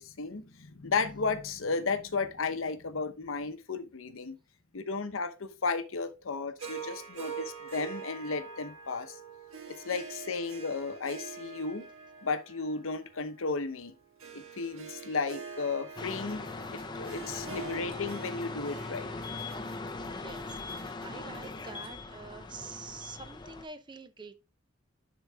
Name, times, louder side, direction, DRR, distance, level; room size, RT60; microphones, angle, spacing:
voice 1, 0.0-4.4 4.7-9.2 9.7-11.9 12.2-13.9 14.3-19.1, left 4 dB, 75° left, 0.8 m, -34 dB
Harp, 6.6-21.0, right 6 dB, 85° right, 1.5 m, -45 dB
sound 1, 16.0-23.6, left 3 dB, 20° left, 0.6 m, -40 dB
sound 2, 16.0-21.9, right 2 dB, 50° right, 1.5 m, -57 dB
voice 2, 20.1-24.4, right 4 dB, 25° right, 0.6 m, -46 dB
10.0 x 3.9 x 3.4 m
head